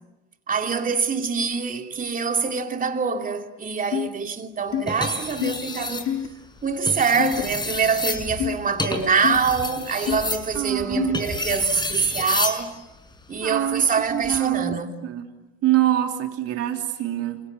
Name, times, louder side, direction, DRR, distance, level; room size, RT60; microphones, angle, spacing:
voice 1, 0.5-6.1 6.6-12.7 13.3-15.0, right 5 dB, 25° right, 2.8 m, -25 dB
sound 1, 3.9-4.1 4.7-4.8 5.4-5.5 6.1-6.3 7.2-7.4 8.4-8.6 9.2-9.4 10.1-10.2 11.0-11.1, left 11 dB, 45° left, 2.0 m, -25 dB
sound 2, 4.9-6.1 6.7-12.7 14.1-14.4, left 3 dB, 15° left, 5.8 m, -30 dB
voice 2, 10.5-11.2 13.4-14.8 15.0-15.3 15.6-17.4, right 13 dB, 50° right, 3.4 m, -25 dB
29.5 x 27.5 x 7.2 m
hypercardioid pair, 75°, 32 cm